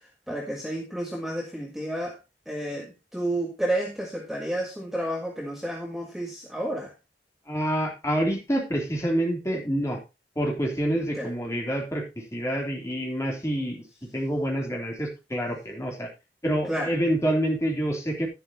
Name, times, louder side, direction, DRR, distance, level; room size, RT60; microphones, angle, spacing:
voice 1, 0.3-2.2 2.5-6.9 11.1-11.3 16.7-16.9, right 1 dB, ahead, 0 dB, 1.6 m, -31 dB
voice 2, 7.5-10.0 10.3-12.0 12.3-13.8 14.1-16.1 16.4-18.3, right 1 dB, 15° left, 0 dB, 3.1 m, -27 dB
11.5 x 11.0 x 2.8 m, 0.26 s
head